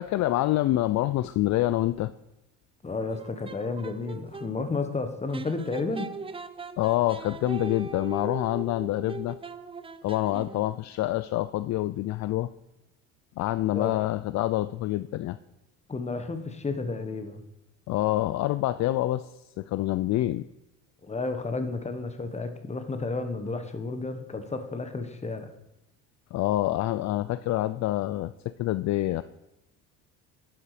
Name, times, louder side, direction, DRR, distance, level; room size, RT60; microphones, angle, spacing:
voice 1, 0.0-2.1 6.8-9.4 10.0-12.5 13.4-15.4 17.9-20.5 26.3-29.2, left 15 dB, 50° left, 14 dB, 0.4 m, -27 dB
voice 2, 2.8-6.1 13.7-13.9 15.9-17.4 21.0-25.5, left 3 dB, 20° left, 8 dB, 1.3 m, -32 dB
sound 1, 3.1-4.5 5.3-10.8, right 3 dB, 15° right, 0.5 m, -39 dB
12.0 x 7.3 x 5.0 m, 0.88 s
cardioid pair, 110°, 35 cm